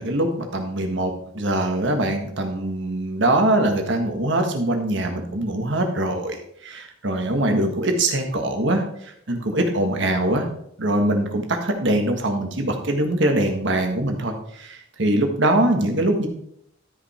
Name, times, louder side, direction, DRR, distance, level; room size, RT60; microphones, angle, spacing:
voice 1, 0.0-10.5 10.8-16.3, right 1 dB, 60° right, 4 dB, 1.6 m, -23 dB
13.0 x 5.3 x 4.4 m, 0.71 s
head